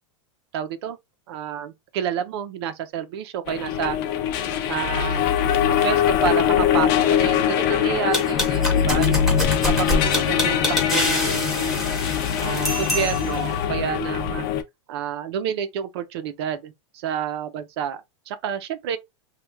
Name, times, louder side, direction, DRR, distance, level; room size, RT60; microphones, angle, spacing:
voice 1, 0.5-1.0 1.3-4.0 4.7-5.3 5.7-9.3 9.6-11.9 12.4-14.5 14.9-18.0 18.3-19.0, right 8 dB, 55° right, 0.7 m, -29 dB
sound 1, 3.5-14.6, left 9 dB, 45° left, 0.6 m, -22 dB
sound 2, 8.1-13.5, left 1 dB, ahead, 1.0 m, -26 dB
3.2 x 2.4 x 3.4 m
supercardioid pair, 160°, 16 cm